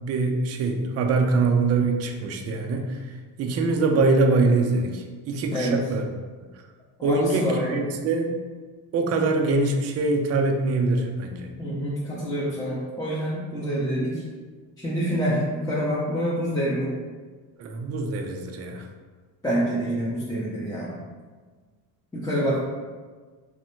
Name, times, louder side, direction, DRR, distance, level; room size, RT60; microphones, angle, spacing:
voice 1, 0.0-2.9 3.4-6.1 7.0-8.4 8.9-11.5 17.6-18.8, right 3 dB, 35° right, 3 dB, 0.4 m, -23 dB
voice 2, 7.0-7.8 11.6-14.2 14.8-16.9 19.4-20.9 22.1-22.6, equal, 10° left, -8 dB, 0.6 m, -26 dB
3.2 x 2.1 x 3.0 m, 1.4 s
supercardioid pair, 80°, 48 cm